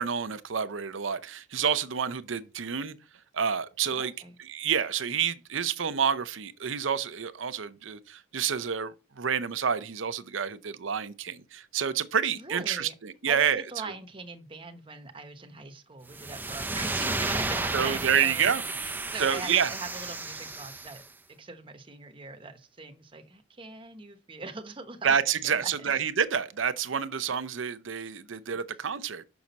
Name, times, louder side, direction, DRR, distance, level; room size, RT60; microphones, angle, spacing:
voice 1, 0.0-3.0 3.3-4.1 4.4-13.9 17.7-18.6 19.0-19.7 25.0-29.3, right 7 dB, 85° right, 0.7 m, -28 dB
voice 2, 3.9-4.4 12.4-12.9 13.3-21.1 21.4-25.1 25.6-25.9, right 3 dB, 25° right, 0.9 m, -41 dB
sound 1, 16.1-21.0, right 2 dB, 10° right, 0.5 m, -33 dB
6.3 x 6.0 x 4.1 m
head